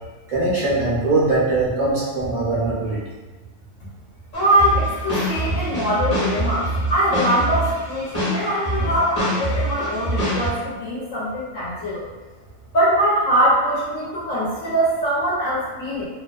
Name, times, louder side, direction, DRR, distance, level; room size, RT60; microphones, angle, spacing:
voice 1, 0.3-3.0, right 2 dB, 65° right, -8 dB, 0.3 m, -21 dB
voice 2, 4.3-12.0 12.7-16.1, right 1 dB, 75° left, -8 dB, 1.0 m, -22 dB
sound 1, 4.3-10.5, right 1 dB, 30° left, 1.0 m, -25 dB
2.5 x 2.3 x 2.2 m, 1.3 s
omnidirectional pair, 1.4 m